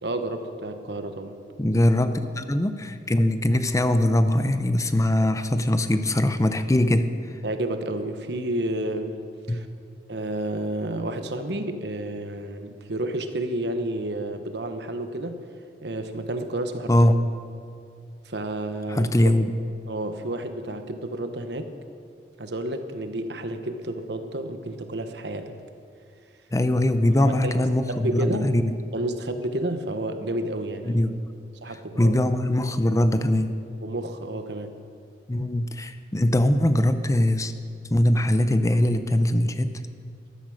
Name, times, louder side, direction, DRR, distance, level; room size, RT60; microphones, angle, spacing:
voice 1, 0.0-1.4 7.4-9.7 10.1-15.5 15.8-16.9 18.2-19.1 19.9-21.7 22.4-25.5 27.0-28.5 28.9-31.0 31.6-32.1 33.8-34.8, right 1 dB, 70° right, 8 dB, 1.2 m, -31 dB
voice 2, 1.6-7.1 9.5-9.6 16.9-17.2 18.9-19.5 26.5-28.7 30.8-31.1 32.0-33.6 35.3-37.5 37.8-39.7, left 1 dB, 20° left, 10 dB, 0.6 m, -21 dB
14.5 x 12.5 x 6.5 m, 2.3 s
head